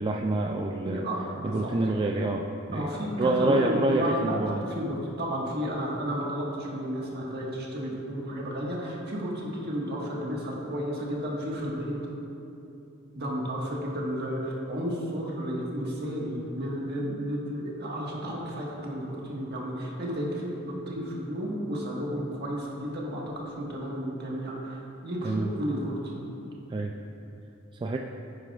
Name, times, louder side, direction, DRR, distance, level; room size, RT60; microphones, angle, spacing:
voice 1, 0.0-1.0 1.4-4.6 25.2-25.5 26.7-26.9 27.8-28.0, right 2 dB, 25° right, 1 dB, 0.3 m, -27 dB
voice 2, 0.8-1.7 2.7-4.4 4.6-12.0 13.1-26.3, equal, 55° right, -3 dB, 1.6 m, -32 dB
10.5 x 9.4 x 2.4 m, 2.8 s
head